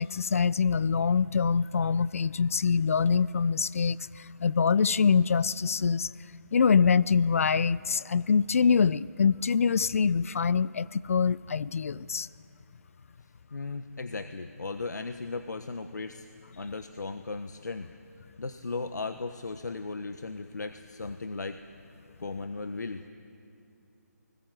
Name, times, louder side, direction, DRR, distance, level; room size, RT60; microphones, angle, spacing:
voice 1, 0.0-6.1 6.5-12.3, left 6 dB, 55° left, 20 dB, 0.5 m, -25 dB
voice 2, 13.5-16.3 16.6-17.9 18.4-21.6 22.2-23.0, left 3 dB, 80° left, 9 dB, 1.2 m, -36 dB
29.0 x 20.0 x 7.8 m, 2.7 s
figure-of-eight pair, 160°, 9 cm